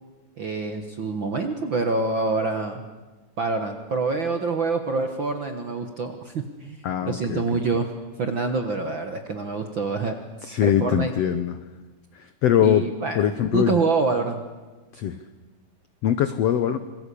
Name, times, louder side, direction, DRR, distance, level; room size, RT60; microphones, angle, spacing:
voice 1, 0.4-2.8 3.4-6.8 7.0-7.9 8.2-10.2 10.6-11.1 12.6-14.4, right 4 dB, 60° right, 6 dB, 1.3 m, -26 dB
voice 2, 6.8-7.4 10.4-11.6 12.1-12.8 13.1-13.8 14.9-15.2 16.0-16.8, left 10 dB, 90° left, 11 dB, 1.4 m, -22 dB
27.0 x 21.5 x 8.5 m, 1.2 s
omnidirectional pair, 4.2 m